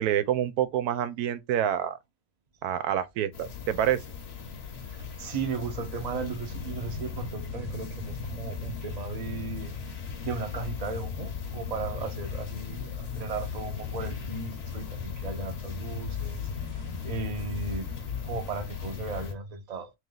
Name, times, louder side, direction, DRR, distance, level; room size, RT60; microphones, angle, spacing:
voice 1, 0.0-2.0 2.6-4.0, right 10 dB, 90° right, 1.2 m, -27 dB
sound 1, 3.3-19.3, left 6 dB, 50° left, 0.9 m, -37 dB
voice 2, 4.8-17.9 18.2-19.9, right 4 dB, 35° right, 0.7 m, -36 dB
3.2 x 3.0 x 3.8 m
omnidirectional pair, 1.6 m